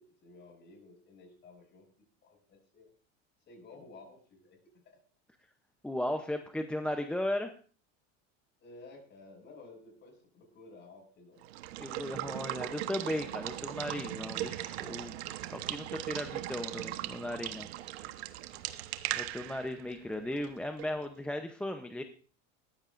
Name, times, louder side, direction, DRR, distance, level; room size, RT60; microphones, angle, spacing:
voice 1, 0.0-1.9 2.2-2.9 3.5-5.0 8.6-11.5 11.9-12.6, left 3 dB, 35° left, 3 dB, 6.8 m, -54 dB
voice 2, 5.8-7.5 11.8-15.2 15.4-17.7 18.0-18.1 19.1-22.0, left 1 dB, 5° left, 6 dB, 0.7 m, -36 dB
Water / Water tap faucet / Liquid, 11.4-21.0, right 14 dB, 90° right, 1.2 m, -39 dB
19.5 x 15.0 x 2.6 m, 0.41 s
supercardioid pair, 145°, 31 cm